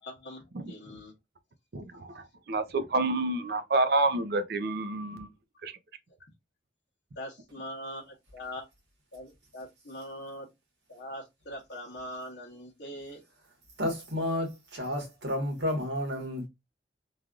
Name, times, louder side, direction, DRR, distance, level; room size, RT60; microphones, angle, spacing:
voice 1, 0.0-1.1 7.2-8.7 9.1-10.5 10.9-13.2, equal, 70° left, 0.8 m, -42 dB
voice 2, 2.5-5.3 5.6-5.7, right 2 dB, 60° right, 0.5 m, -28 dB
voice 3, 13.8-16.5, left 1 dB, 85° right, 1.4 m, -31 dB
3.3 x 2.4 x 2.4 m
head